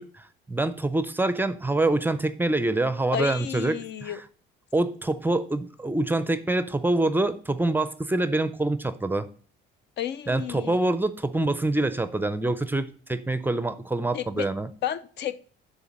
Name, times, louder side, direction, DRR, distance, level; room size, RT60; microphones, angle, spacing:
voice 1, 0.0-4.2 4.7-9.3 10.3-14.7, right 2 dB, 10° right, 0.5 m, -26 dB
voice 2, 3.1-4.2 10.0-10.8 14.1-14.5 14.8-15.4, left 10 dB, 60° left, 0.5 m, -31 dB
7.1 x 3.6 x 6.3 m
cardioid pair, 110°, 20 cm